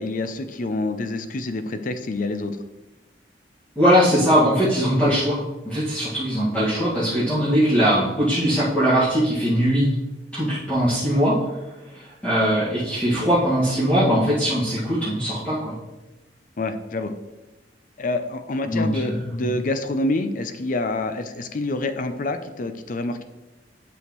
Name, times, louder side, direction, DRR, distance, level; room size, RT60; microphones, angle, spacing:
voice 1, 0.0-2.6 16.6-17.1 18.0-23.2, left 2 dB, 50° left, 9 dB, 0.6 m, -27 dB
voice 2, 3.7-5.4 5.6-9.9 10.3-11.4 12.2-15.7 18.7-19.5, equal, 10° left, -11 dB, 1.8 m, -20 dB
8.4 x 6.4 x 3.1 m, 1.1 s
head